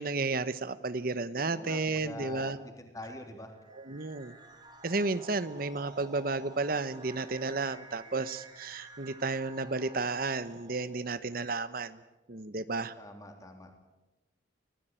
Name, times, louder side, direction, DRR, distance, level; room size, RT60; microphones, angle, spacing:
voice 1, 0.0-2.6 3.7-4.3 4.8-12.0 12.3-12.9, right 3 dB, 50° right, 14 dB, 0.9 m, -32 dB
voice 2, 1.5-3.6 13.0-13.7, left 1 dB, 15° left, 4 dB, 3.3 m, -45 dB
sound 1, 3.5-11.1, right 2 dB, 25° right, 3.0 m, -52 dB
24.5 x 17.0 x 9.0 m, 1.0 s
head